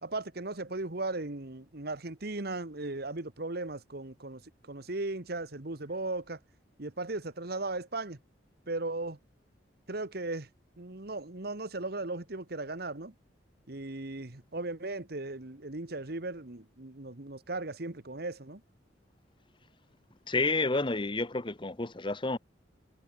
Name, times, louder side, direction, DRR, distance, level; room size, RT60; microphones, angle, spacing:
voice 1, 0.0-6.4 6.8-8.2 8.7-9.2 9.9-10.5 10.8-13.1 13.7-18.6, right 2 dB, 60° right, 1.7 m, -37 dB
voice 2, 20.3-22.4, left 3 dB, 25° left, 1.1 m, -30 dB
head